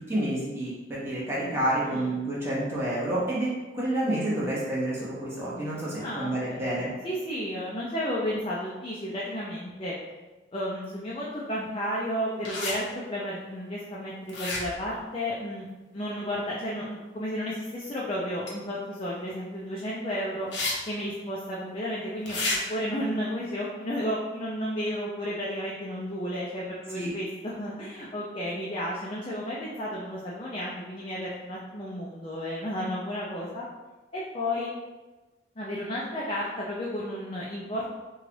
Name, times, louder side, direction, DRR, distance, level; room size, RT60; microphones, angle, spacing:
voice 1, 0.0-3.5 3.7-6.9 26.9-27.1, right 1 dB, 15° right, -8 dB, 0.9 m, -29 dB
voice 2, 1.8-2.2 5.9-9.9 10.5-15.7 15.9-20.5 20.9-22.4 22.7-33.6 34.1-34.8 35.6-37.9, equal, 30° left, -6 dB, 0.4 m, -32 dB
sound 1, 12.4-12.8 14.3-14.9 18.5-18.6 20.5-20.7 21.0-21.1 22.3-22.6, left 2 dB, 80° left, 0.8 m, -30 dB
3.2 x 2.3 x 3.9 m, 1.2 s
head